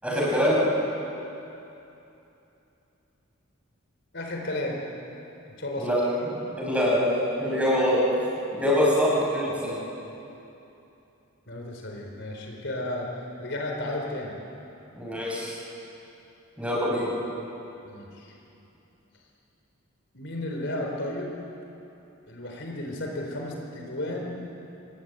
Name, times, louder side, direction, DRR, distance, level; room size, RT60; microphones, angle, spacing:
voice 1, 0.0-0.7 5.8-6.0 6.6-8.0 8.5-9.8 15.0-15.6 16.6-17.1, equal, 5° right, -5 dB, 7.1 m, -24 dB
voice 2, 4.1-4.8 5.6-5.9 9.3-9.4 11.5-14.3 17.8-18.3 20.1-21.4 22.3-24.4, left 1 dB, 60° left, 0 dB, 4.1 m, -33 dB
27.5 x 21.5 x 9.0 m, 2.9 s
head